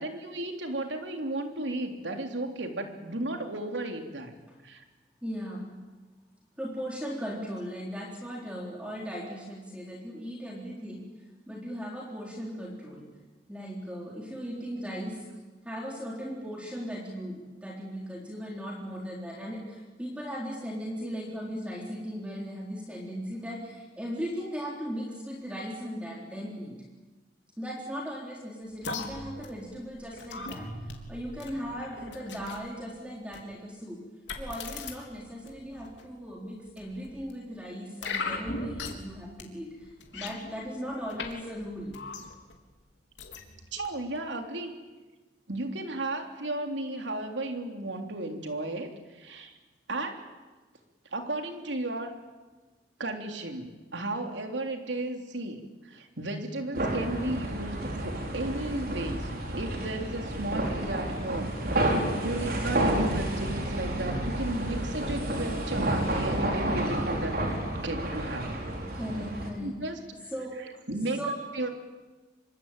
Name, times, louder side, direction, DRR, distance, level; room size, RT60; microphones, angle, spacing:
voice 1, 0.0-4.3 4.6-4.8 43.7-44.7 45.5-49.6 49.9-50.2 51.1-52.1 53.0-59.3 59.6-67.4 67.8-68.6 69.6-70.0 70.9-71.2 71.5-71.7, right 2 dB, 90° right, 4 dB, 3.4 m, -34 dB
voice 2, 5.2-5.8 6.6-11.0 11.5-13.1 13.5-15.2 15.6-26.8 27.6-34.0 34.4-42.0 69.0-69.8 70.3-70.6 71.2-71.4, equal, 5° right, -2 dB, 4.0 m, -37 dB
sound 1, 28.8-32.7 33.3-33.5 34.3-34.9 35.4-36.0 36.8-37.3 38.0-39.1 39.4-39.5 39.8-41.3 41.6-42.6 43.2-43.9 44.1-44.2, left 3 dB, 90° left, 3.7 m, -39 dB
sound 2, 56.7-69.5, right 1 dB, 55° right, 4.8 m, -30 dB
26.0 x 24.0 x 9.1 m, 1.3 s
head